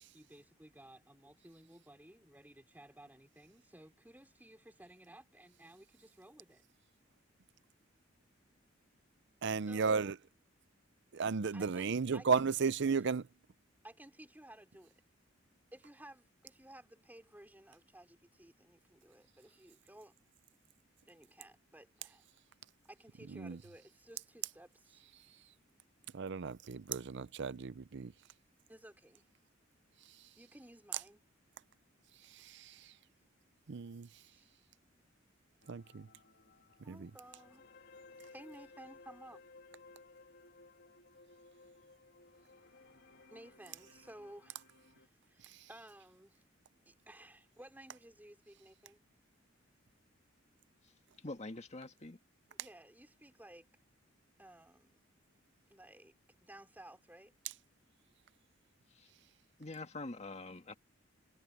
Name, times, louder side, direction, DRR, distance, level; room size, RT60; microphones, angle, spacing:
voice 1, 0.0-6.6 9.7-9.8 11.5-13.0 13.8-14.9 15.7-20.2 21.1-22.2 22.8-25.0 28.7-29.3 30.4-31.2 34.3-34.5 36.8-37.7 38.3-39.4 43.3-44.6 45.0-46.4 46.9-49.0 52.5-53.7 54.4-55.0 55.7-56.1 56.4-57.3, right 1 dB, 10° right, 3.8 m, -56 dB
voice 2, 9.4-10.2 11.1-13.2 23.3-23.6 26.1-28.1 32.3-32.9 33.7-34.1 35.7-36.1 36.9-37.1, right 5 dB, 60° right, 0.5 m, -34 dB
sound 1, 35.6-45.1, left 3 dB, 55° left, 2.9 m, -59 dB
voice 3, 51.2-52.2 59.0-59.1 59.6-60.8, left 2 dB, 35° left, 1.7 m, -45 dB
head